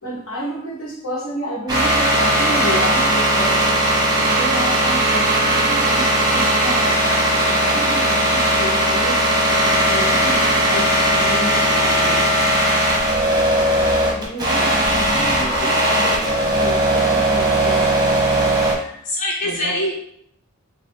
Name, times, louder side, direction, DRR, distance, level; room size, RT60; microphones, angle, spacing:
voice 1, 0.0-3.8 4.2-9.2 9.8-12.5 13.9-17.9 18.7-19.1 19.4-19.8, equal, 65° left, -3 dB, 1.3 m, -30 dB
sound 1, 1.7-18.7, right 1 dB, 20° right, 0.9 m, -18 dB
voice 2, 17.3-18.4 19.0-19.9, left 1 dB, 35° left, -1 dB, 0.4 m, -27 dB
5.6 x 2.3 x 3.6 m, 0.72 s
head